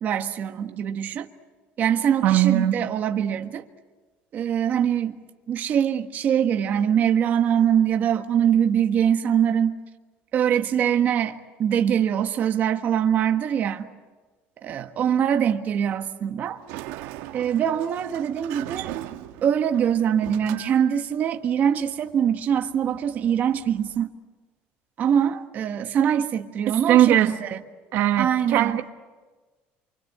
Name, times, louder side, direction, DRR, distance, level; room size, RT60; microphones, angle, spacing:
voice 1, 0.0-1.3 1.8-3.6 4.3-5.2 5.5-9.8 10.3-13.9 14.6-16.6 17.3-24.1 25.0-27.6 28.2-28.8, right 9 dB, 45° right, 1.5 m, -23 dB
voice 2, 2.2-2.7 26.9-27.3 27.9-28.9, right 12 dB, 60° right, 1.4 m, -19 dB
Sliding door, 16.4-24.0, right 15 dB, 90° right, 1.5 m, -40 dB
28.0 x 25.0 x 8.1 m
cardioid pair, 140°, 4 cm